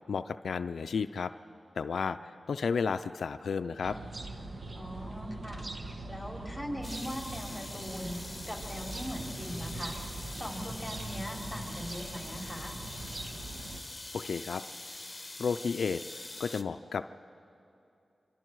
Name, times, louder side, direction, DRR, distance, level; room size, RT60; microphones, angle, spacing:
voice 1, 0.1-1.3 1.8-4.0 14.1-14.6 15.4-17.2, left 5 dB, 80° left, 10 dB, 0.4 m, -32 dB
sound 1, 3.8-13.8, right 2 dB, 60° right, 1.4 m, -42 dB
voice 2, 4.7-5.7 6.1-10.0 10.3-12.8, equal, ahead, 0 dB, 3.9 m, -40 dB
sound 2, 6.8-16.6, left 2 dB, 25° left, 1.1 m, -44 dB
25.0 x 24.5 x 4.7 m, 2.7 s
cardioid pair, 50°, 0 cm